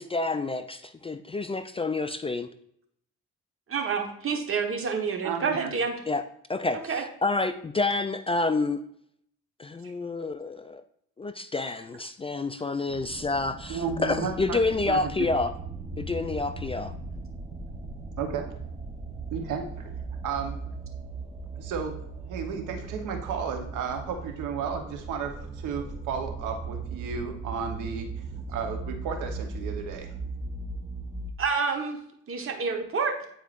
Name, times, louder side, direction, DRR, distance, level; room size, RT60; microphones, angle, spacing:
voice 1, 0.0-2.5 6.1-6.2 6.5-8.8 9.6-10.8 11.2-15.5 16.0-16.9, left 3 dB, 20° left, 10 dB, 0.4 m, -28 dB
voice 2, 3.7-5.9 6.9-7.0 31.4-32.0 32.3-33.1, right 5 dB, 45° right, 3 dB, 1.3 m, -28 dB
voice 3, 5.2-5.7 13.7-14.6 14.9-15.3 18.2-18.4 19.3-19.9 20.2-20.7 21.6-21.9 22.3-28.1 28.5-30.1, right 6 dB, 90° right, 4 dB, 1.1 m, -33 dB
sound 1, 12.9-31.3, right 3 dB, 20° right, 0.9 m, -38 dB
9.0 x 4.6 x 2.5 m, 0.70 s
cardioid pair, 90°, 30 cm